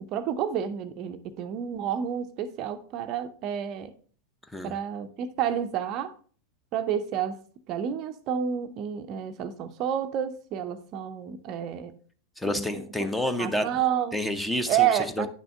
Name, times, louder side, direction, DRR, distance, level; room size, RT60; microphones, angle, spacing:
voice 1, 0.1-3.9 4.6-6.1 6.7-7.4 7.7-12.0 12.5-12.8 13.4-14.1 14.7-15.3, right 9 dB, 40° right, 0.6 m, -29 dB
voice 2, 12.4-13.7 14.1-14.9 15.2-15.3, left 1 dB, 5° left, 0.7 m, -29 dB
9.8 x 6.1 x 3.3 m
figure-of-eight pair, 90°, 0 cm